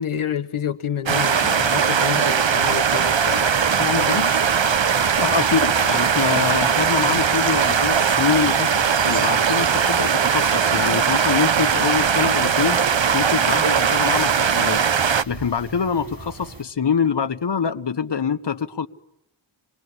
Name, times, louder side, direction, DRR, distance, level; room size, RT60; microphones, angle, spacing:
voice 1, 0.0-3.5 3.8-4.3, left 8 dB, 80° left, 1.2 m, -28 dB
sound 1, 1.1-15.2, right 7 dB, 60° right, 1.0 m, -19 dB
sound 2, 2.6-16.6, right 2 dB, 45° right, 3.7 m, -40 dB
voice 2, 5.2-8.7 9.0-12.8 13.1-14.8 15.3-18.9, left 6 dB, 55° left, 1.4 m, -24 dB
26.5 x 20.5 x 9.8 m
wide cardioid pair, 70°, 49 cm